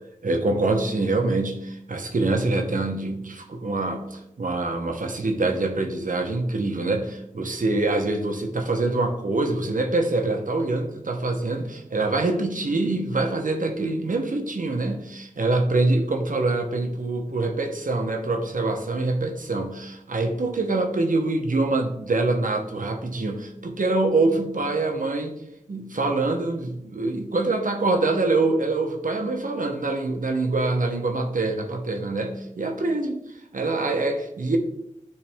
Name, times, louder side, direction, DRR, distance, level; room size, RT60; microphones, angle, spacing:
voice 1, 0.2-25.4 25.7-34.6, right 2 dB, 75° right, 3 dB, 0.8 m, -25 dB
8.7 x 3.3 x 3.4 m, 0.81 s
wide cardioid pair, 45°, 14 cm